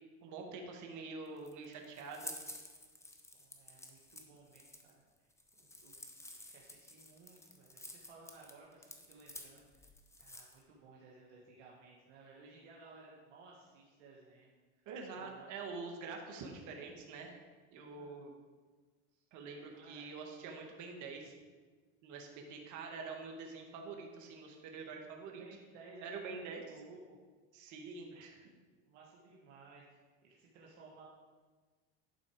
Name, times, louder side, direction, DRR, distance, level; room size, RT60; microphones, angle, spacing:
voice 1, 0.2-2.3 14.9-17.4 17.7-18.3 19.3-21.3 22.0-25.4 26.0-26.6 27.5-28.5, right 4 dB, 55° right, 2 dB, 1.7 m, -46 dB
sound 1, 1.3-10.6, left 2 dB, 10° left, 0.9 m, -51 dB
voice 2, 3.3-5.0 5.6-6.1 6.4-9.8 10.2-14.5 15.1-15.5 17.8-18.2 19.1-19.2 19.7-20.1 25.4-27.2 28.8-31.0, right 3 dB, 80° right, -4 dB, 1.6 m, -58 dB
11.0 x 4.3 x 4.9 m, 1.4 s
supercardioid pair, 95°, 35 cm